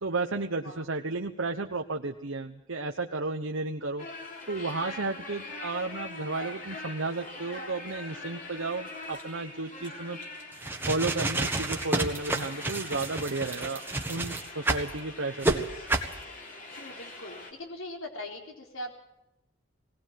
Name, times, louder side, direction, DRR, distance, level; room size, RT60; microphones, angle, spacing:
voice 1, 0.0-4.1 4.5-10.2 10.8-13.8 14.1-15.7, right 3 dB, 75° right, 3 dB, 1.1 m, -33 dB
sound 1, 4.0-17.5, left 2 dB, 40° left, 3.3 m, -43 dB
sound 2, 10.5-14.9 15.4-15.6 15.9-16.1, right 2 dB, 10° right, 1.6 m, -29 dB
voice 2, 16.7-18.9, left 1 dB, 80° left, 1 dB, 4.0 m, -41 dB
20.0 x 19.0 x 7.7 m, 0.86 s
head